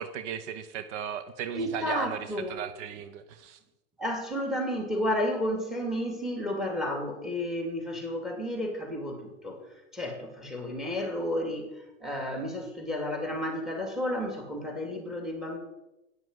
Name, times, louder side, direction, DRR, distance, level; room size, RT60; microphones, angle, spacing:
voice 1, 0.0-3.6, right 9 dB, 60° right, 11 dB, 0.9 m, -36 dB
voice 2, 1.5-2.6 4.0-9.6 9.9-11.7 12.0-15.6, left 1 dB, ahead, 4 dB, 2.5 m, -32 dB
9.7 x 6.9 x 7.9 m, 0.97 s
hypercardioid pair, 120°, 39 cm